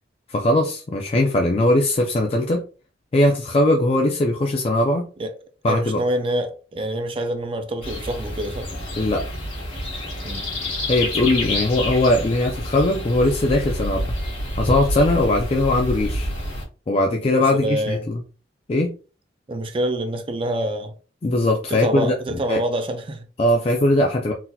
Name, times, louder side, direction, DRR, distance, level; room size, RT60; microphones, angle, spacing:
voice 1, 0.3-2.6 3.1-5.1 5.6-6.0 9.0-9.2 10.9-14.0 14.6-16.3 16.9-18.2 18.7-18.9 21.2-22.1 22.5-22.6 23.4-24.3, left 1 dB, 30° left, 0.4 m, -20 dB
voice 2, 5.7-8.7 10.2-10.5 17.5-18.1 19.5-20.9 21.7-23.3, right 1 dB, 30° right, 0.4 m, -26 dB
sound 1, 7.8-16.6, left 1 dB, 85° left, 1.8 m, -28 dB
3.9 x 2.7 x 2.2 m
head